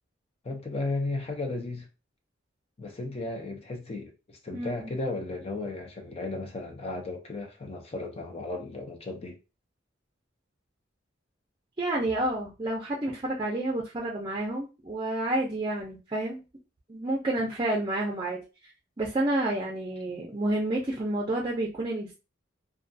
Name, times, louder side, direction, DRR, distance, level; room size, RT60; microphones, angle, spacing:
voice 1, 0.4-1.9 2.8-9.4 17.4-17.5, left 2 dB, 30° left, 0.5 m, -35 dB
voice 2, 4.5-4.9 11.8-16.4 16.9-18.4 19.0-22.2, right 1 dB, 25° right, 0.5 m, -29 dB
2.3 x 2.3 x 2.6 m
head